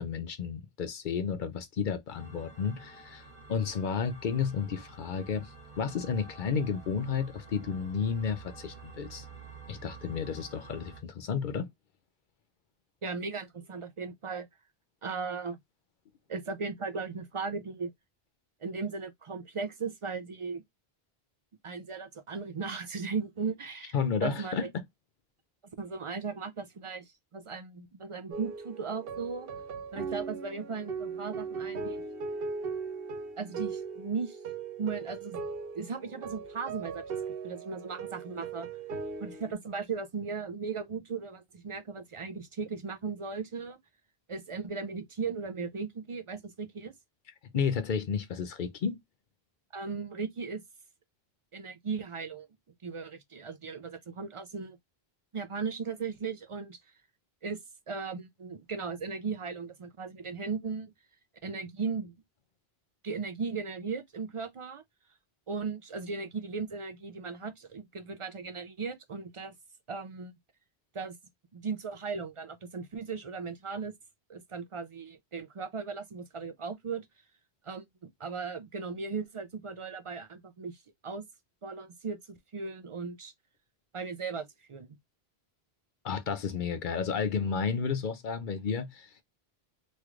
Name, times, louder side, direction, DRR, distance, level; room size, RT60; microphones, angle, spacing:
voice 1, 0.0-3.2 3.5-9.3 9.7-11.7 23.9-24.7 47.5-49.0 86.0-89.2, left 6 dB, 60° left, 0.6 m, -32 dB
sound 1, 2.1-11.0, right 4 dB, 30° right, 1.4 m, -49 dB
voice 2, 13.0-14.5 15.0-15.6 16.3-17.9 18.6-20.6 21.6-24.0 24.2-24.7 25.8-29.5 29.9-32.0 33.4-34.4 34.8-35.4 35.7-38.7 39.2-43.8 44.3-46.9 49.7-50.6 51.5-52.5 52.8-54.8 55.3-56.8 57.4-57.6 57.9-60.9 61.4-62.1 63.0-64.8 65.5-69.5 69.9-70.3 70.9-71.2 71.5-73.9 74.3-77.1 77.6-77.8 78.2-81.2 81.6-83.3 83.9-85.0, right 5 dB, 50° right, 0.3 m, -37 dB
sound 2, 28.3-39.5, right 5 dB, 70° right, 0.8 m, -38 dB
3.1 x 3.1 x 2.3 m
omnidirectional pair, 1.0 m